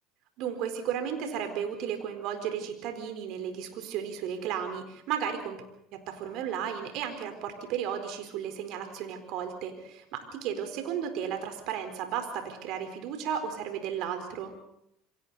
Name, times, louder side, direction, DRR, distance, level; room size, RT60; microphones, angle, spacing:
voice 1, 0.4-5.6 5.9-14.5, right 8 dB, 60° right, 7 dB, 4.3 m, -34 dB
28.0 x 23.5 x 4.2 m, 0.79 s
hypercardioid pair, 75°, 0 cm